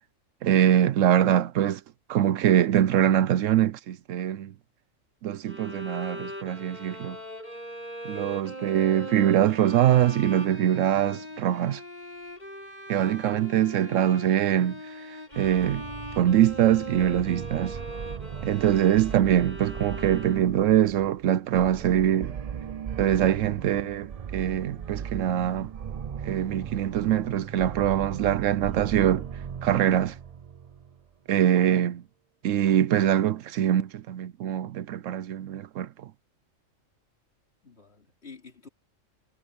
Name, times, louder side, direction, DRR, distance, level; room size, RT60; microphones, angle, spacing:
voice 1, 0.4-1.8 2.1-4.5 5.2-7.2 8.0-11.8 12.9-15.9 16.2-17.8 18.4-22.4 23.0-25.7 26.2-29.3 29.6-30.2 31.3-32.0 32.4-36.1, right 11 dB, 75° right, 1.0 m, -23 dB
Bowed string instrument, 5.5-20.7, equal, 35° left, 4.6 m, -40 dB
voice 2, 13.0-13.3 19.1-19.2 37.6-38.7, left 5 dB, 50° left, 4.0 m, -50 dB
sound 1, 15.3-31.0, right 7 dB, 55° right, 0.4 m, -38 dB
omnidirectional pair, 1.4 m